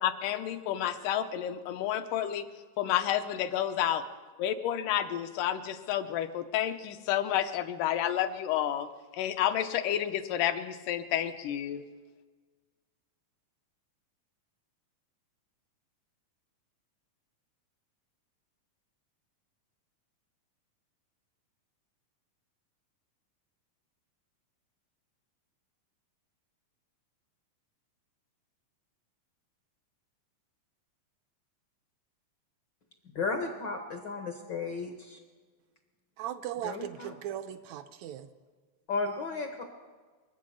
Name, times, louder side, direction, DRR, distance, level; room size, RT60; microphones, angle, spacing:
voice 1, 0.0-2.5 2.8-4.0 4.4-8.9 9.1-11.8, left 11 dB, 85° left, 8 dB, 2.4 m, -30 dB
voice 2, 33.1-35.2 36.6-37.1 38.9-39.6, left 4 dB, 65° left, 4 dB, 1.1 m, -34 dB
voice 3, 36.2-38.3, right 11 dB, 75° right, 10 dB, 1.8 m, -38 dB
25.0 x 8.4 x 6.4 m, 1.4 s
omnidirectional pair, 3.7 m